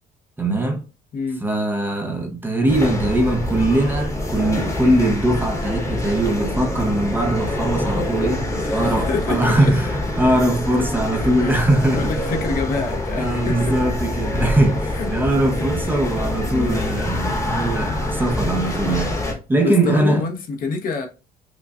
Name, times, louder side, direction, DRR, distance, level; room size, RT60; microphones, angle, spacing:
voice 1, 0.4-0.8 1.4-12.3 13.1-19.2 19.5-20.2, right 1 dB, 10° right, 0.7 m, -21 dB
sound 1, 2.7-19.3, left 1 dB, 15° left, 1.1 m, -25 dB
voice 2, 8.6-9.7 11.4-11.7 11.9-13.8 14.9-15.1 15.6-15.7 19.6-21.1, left 4 dB, 55° left, 0.9 m, -26 dB
5.0 x 2.3 x 2.4 m
cardioid pair, 110°, 17 cm